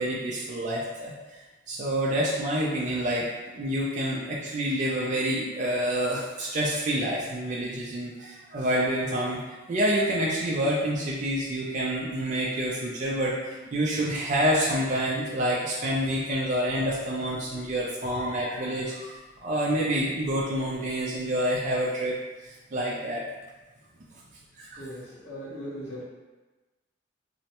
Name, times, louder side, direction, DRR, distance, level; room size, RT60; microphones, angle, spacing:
voice 1, 0.0-1.4 1.7-3.2 3.5-9.4 9.7-22.2 22.4-23.2 24.6-24.8, equal, 40° right, -5 dB, 0.3 m, -28 dB
voice 2, 24.8-26.0, equal, 35° left, -11 dB, 1.0 m, -38 dB
3.1 x 2.1 x 2.8 m, 1.2 s
head